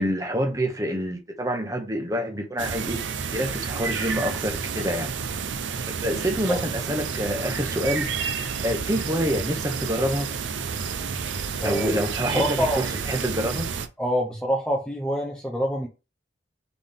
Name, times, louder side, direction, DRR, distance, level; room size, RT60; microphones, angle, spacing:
voice 1, 0.0-3.0 3.3-5.1 5.9-10.3 11.6-13.7, equal, 20° right, 1.0 m, -27 dB
sound 1, 2.6-13.9, right 6 dB, 75° right, 0.5 m, -30 dB
voice 2, 11.6-12.1 12.4-12.8 14.0-15.9, equal, 5° left, 0.7 m, -26 dB
4.0 x 3.6 x 3.5 m
head